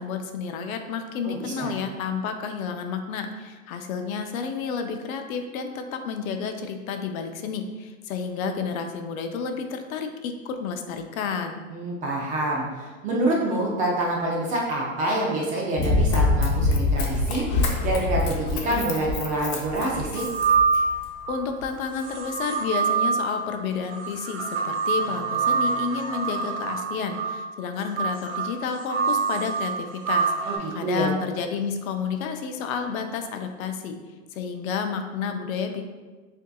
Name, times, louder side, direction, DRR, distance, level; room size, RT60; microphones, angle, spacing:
voice 1, 0.0-11.6 21.3-34.0 34.3-35.8, left 6 dB, 70° left, 6 dB, 0.6 m, -31 dB
voice 2, 1.2-1.7 11.7-17.4 17.8-20.3 30.5-31.1, right 1 dB, 20° right, -3 dB, 0.4 m, -27 dB
Run, 15.8-21.0 21.6-21.7, left 2 dB, 35° left, 0.6 m, -25 dB
sound 1, 20.2-21.4 22.0-30.6, right 5 dB, 70° right, 1.2 m, -26 dB
6.4 x 2.7 x 2.3 m, 1.3 s
supercardioid pair, 140°, 42 cm